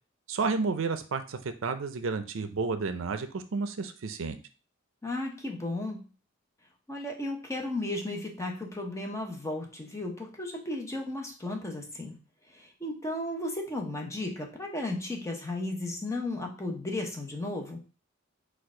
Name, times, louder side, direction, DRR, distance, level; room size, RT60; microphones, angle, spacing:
voice 1, 0.3-4.4, right 4 dB, 70° right, 9 dB, 0.5 m, -31 dB
voice 2, 5.0-6.1 6.9-12.1 12.5-17.8, left 2 dB, 15° left, 1 dB, 0.8 m, -34 dB
4.4 x 2.4 x 4.8 m, 0.35 s
head